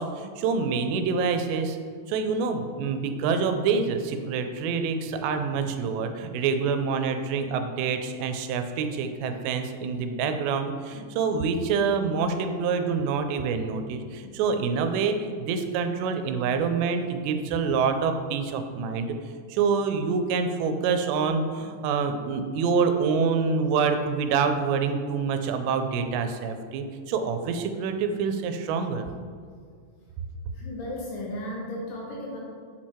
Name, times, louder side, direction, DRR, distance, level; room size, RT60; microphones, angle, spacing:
voice 1, 0.0-1.8 2.1-19.2 19.5-29.1, right 5 dB, 85° right, 7 dB, 2.8 m, -26 dB
voice 2, 30.5-32.4, left 1 dB, 70° left, -3 dB, 2.4 m, -35 dB
7.9 x 4.5 x 4.4 m, 2.1 s
omnidirectional pair, 4.9 m